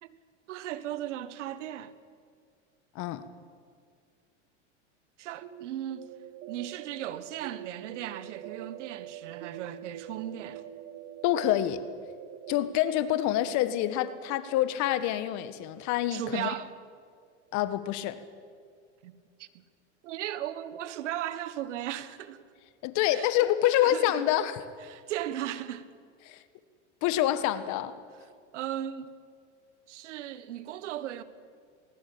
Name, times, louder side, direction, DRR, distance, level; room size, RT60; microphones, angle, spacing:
voice 1, 0.5-1.9 5.2-6.1 6.5-10.6 16.1-16.7 19.0-19.6 20.0-22.5 23.1-23.3 23.8-24.2 24.8-25.9 28.5-29.1 29.9-31.2, right 12 dB, 75° right, 1.4 m, -37 dB
sound 1, 5.4-17.1, right 11 dB, 60° right, 1.6 m, -46 dB
voice 2, 11.2-11.8 12.5-16.5 17.5-18.2 22.8-24.6 26.2-26.4 27.0-27.9, left 13 dB, 50° left, 1.6 m, -27 dB
20.5 x 19.0 x 8.6 m
hypercardioid pair, 105°, 36 cm